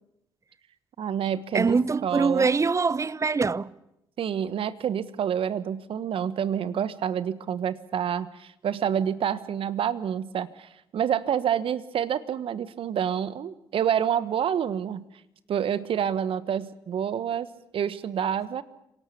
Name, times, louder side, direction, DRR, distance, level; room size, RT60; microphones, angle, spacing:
voice 1, 1.0-2.5 4.2-15.1 15.5-17.5 17.7-18.6, right 9 dB, 60° right, 1.2 m, -28 dB
voice 2, 1.5-3.7, right 4 dB, 30° right, 0.8 m, -23 dB
26.5 x 18.0 x 8.5 m
hypercardioid pair, 50°, 10 cm